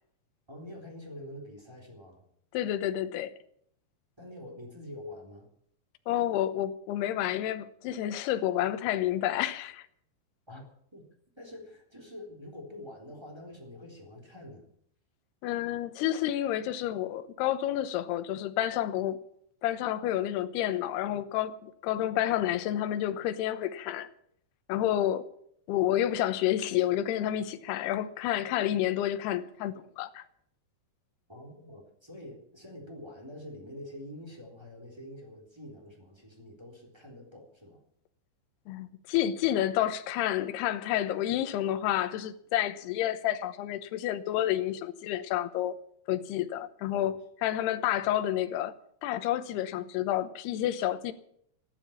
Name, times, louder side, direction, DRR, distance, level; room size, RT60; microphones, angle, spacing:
voice 1, 0.5-2.2 4.2-5.5 10.5-10.6 10.9-11.1 11.4-14.6 31.3-37.8 47.0-47.2, left 1 dB, 5° right, 3.0 m, -46 dB
voice 2, 2.5-3.3 6.1-9.9 15.4-19.2 19.6-24.1 24.7-25.3 25.7-30.2 38.7-45.7 46.1-47.2 47.4-48.7 49.0-51.1, left 12 dB, 75° left, 2.8 m, -29 dB
14.0 x 12.0 x 7.3 m
omnidirectional pair, 5.2 m